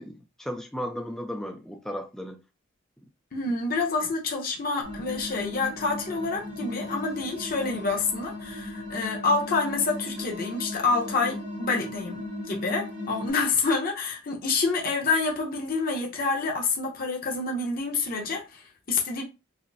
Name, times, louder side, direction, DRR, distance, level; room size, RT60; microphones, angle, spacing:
voice 1, 0.0-2.4 3.5-3.6, equal, 5° left, 0.3 m, -35 dB
voice 2, 3.3-19.2, left 4 dB, 45° left, 0.8 m, -28 dB
sound 1, 4.8-13.3, left 1 dB, 70° right, 1.7 m, -37 dB
5.0 x 2.0 x 2.7 m
head